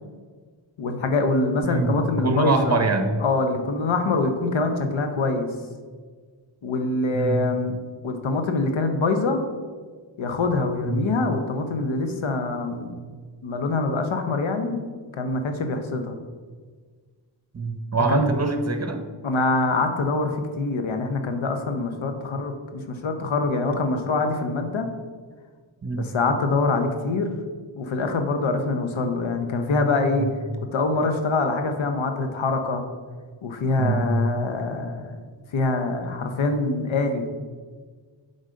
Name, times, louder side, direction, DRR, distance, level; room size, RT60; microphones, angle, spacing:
voice 1, 0.8-2.8 3.2-5.5 6.6-7.8 8.0-9.4 10.2-12.9 13.4-14.8 15.2-16.2 18.1-18.3 19.2-24.9 25.9-27.3 27.8-30.3 30.7-32.8 33.4-35.2 35.5-37.3, left 3 dB, 90° left, 6 dB, 0.9 m, -24 dB
voice 2, 1.6-3.1 7.1-7.5 10.8-11.1 17.5-19.0 25.8-26.1 30.2-30.3 33.8-34.1, right 3 dB, 35° right, 6 dB, 0.9 m, -24 dB
7.7 x 4.0 x 5.1 m, 1.5 s
wide cardioid pair, 70°, 46 cm